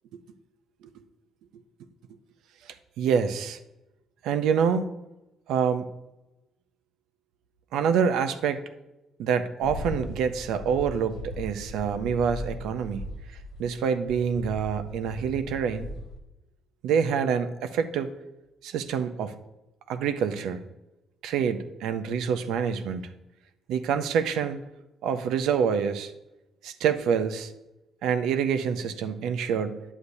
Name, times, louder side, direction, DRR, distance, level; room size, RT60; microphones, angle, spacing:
voice 1, 3.0-3.6 4.2-4.9 5.5-5.9 7.7-8.6 9.2-13.0 13.3-15.9 16.8-18.1 18.6-19.4 19.9-20.6 21.2-23.1 23.7-24.6 25.0-26.1 26.6-27.5 28.0-29.8, right 7 dB, 90° right, 10 dB, 0.5 m, -26 dB
sound 1, 9.6-13.8 14.0-16.2, left 2 dB, 85° left, 0.9 m, -38 dB
9.9 x 8.2 x 2.7 m, 0.97 s
cardioid pair, 90°, 0 cm